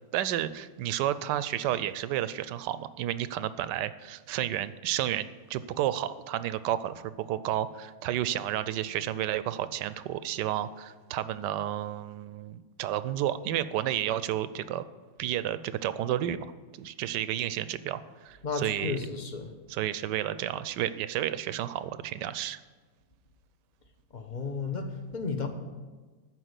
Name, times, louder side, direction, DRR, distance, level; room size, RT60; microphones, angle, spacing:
voice 1, 0.1-14.8 15.2-16.4 16.8-19.1 19.7-22.6, right 12 dB, 85° right, 14 dB, 1.2 m, -31 dB
voice 2, 18.4-19.5 24.1-25.5, left 4 dB, 35° left, 5 dB, 0.9 m, -33 dB
13.5 x 4.9 x 8.0 m, 1.4 s
omnidirectional pair, 1.8 m